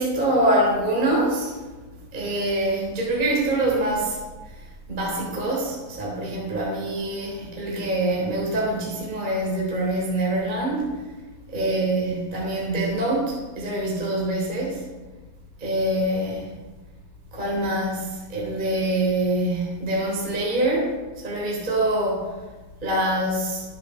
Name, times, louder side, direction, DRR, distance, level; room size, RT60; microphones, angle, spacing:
voice 1, 0.0-1.5 2.1-4.2 4.9-10.9 11.5-14.8 15.6-16.6 17.3-20.9 21.2-22.3 22.8-23.6, right 1 dB, 10° right, -3 dB, 2.7 m, -25 dB
14.5 x 10.5 x 4.3 m, 1.2 s
omnidirectional pair, 5.3 m